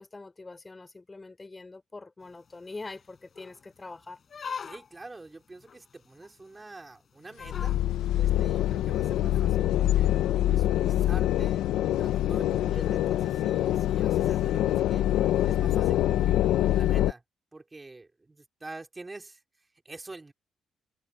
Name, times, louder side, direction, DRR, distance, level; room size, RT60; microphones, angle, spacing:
voice 1, 0.0-4.2, left 3 dB, 20° left, 3.7 m, -44 dB
sound 1, 2.2-2.3 2.8-2.9 3.3-3.7 4.3-5.0 5.7-5.8 6.2-6.3 6.5-6.7 7.4-7.8 9.3-9.5, left 6 dB, 45° left, 4.7 m, -40 dB
voice 2, 4.6-7.7 8.1-10.1 10.4-11.7 12.0-15.1 15.4-17.2 17.5-19.4 19.8-20.3, right 2 dB, 20° right, 4.3 m, -46 dB
sound 2, 7.4-17.1, left 13 dB, 85° left, 0.8 m, -25 dB
cardioid pair, 90°, 0 cm